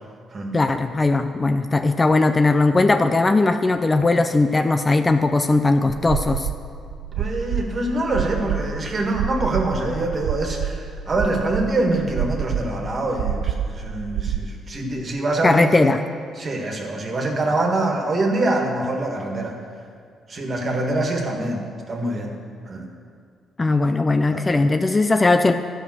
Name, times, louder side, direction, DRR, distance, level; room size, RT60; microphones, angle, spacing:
voice 1, 0.5-6.5 15.4-16.0 23.6-25.5, left 3 dB, 25° left, 8 dB, 0.4 m, -18 dB
sound 1, 6.0-14.4, right 9 dB, 85° right, 0.3 m, -28 dB
voice 2, 7.2-15.9 16.4-19.6 20.3-22.4 22.7-22.9 24.2-24.4 24.8-25.0, right 2 dB, 40° right, 1 dB, 1.7 m, -25 dB
12.5 x 5.2 x 6.2 m, 2.2 s
cardioid pair, 90°, 0 cm